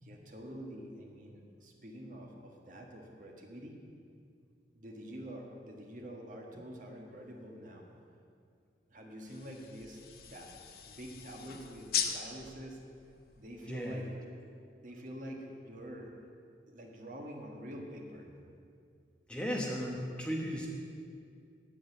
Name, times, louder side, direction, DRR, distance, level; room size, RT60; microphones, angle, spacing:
voice 1, 0.0-3.8 4.7-7.9 8.9-10.0 10.3-12.8 13.2-14.4 14.7-16.1 16.7-18.3, equal, 45° right, 0 dB, 1.4 m, -47 dB
sound 1, 9.3-14.1, left 8 dB, 55° left, 0.7 m, -40 dB
voice 2, 13.7-14.1 19.3-20.7, equal, 5° left, -2 dB, 1.1 m, -35 dB
8.7 x 8.7 x 8.0 m, 2.3 s
head